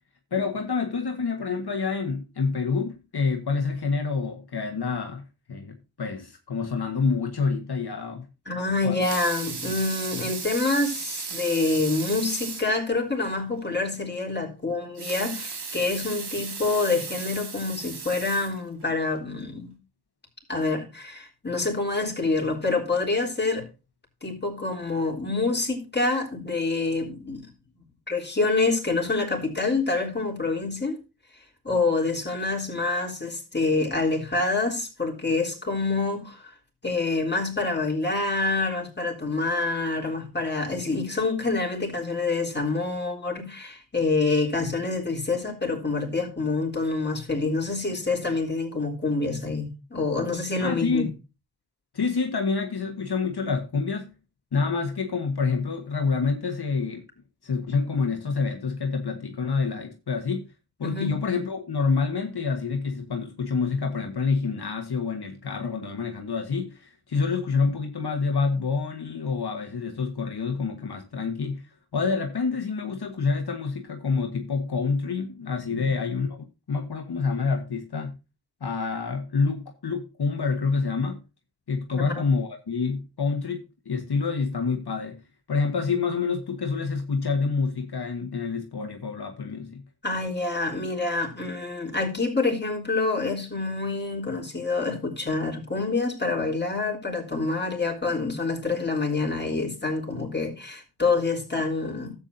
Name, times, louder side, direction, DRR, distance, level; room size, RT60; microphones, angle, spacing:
voice 1, 0.3-8.3 8.8-9.0 50.6-51.1 51.9-54.1 54.5-57.0 57.4-60.5 60.8-76.4 76.7-78.2 78.6-81.2 81.7-85.2 85.5-89.8, left 4 dB, 70° left, 1.5 m, -27 dB
voice 2, 8.5-19.7 20.5-23.6 24.2-27.5 28.1-31.0 31.6-36.5 36.8-51.1 60.8-61.2 75.7-75.9 81.9-82.2 90.0-102.1, left 3 dB, 25° left, 3.9 m, -27 dB
Water tap faucet / Sink (filling or washing) / Liquid, 8.8-12.8 13.2-13.3 13.6-13.7 14.8-19.0 19.6-19.7, right 5 dB, 75° right, 2.1 m, -35 dB
12.5 x 8.4 x 2.7 m
cardioid pair, 45°, 40 cm